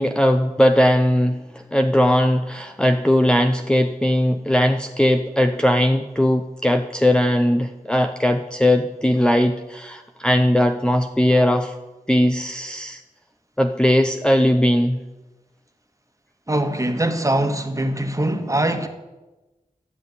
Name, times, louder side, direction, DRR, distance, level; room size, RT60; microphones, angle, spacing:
voice 1, 0.0-1.4 1.7-11.7 12.1-13.0 13.6-15.0, left 1 dB, 5° left, 0.7 m, -19 dB
voice 2, 16.5-18.9, right 1 dB, 20° right, 1.6 m, -22 dB
13.0 x 7.2 x 9.8 m
wide cardioid pair, 85°, 14 cm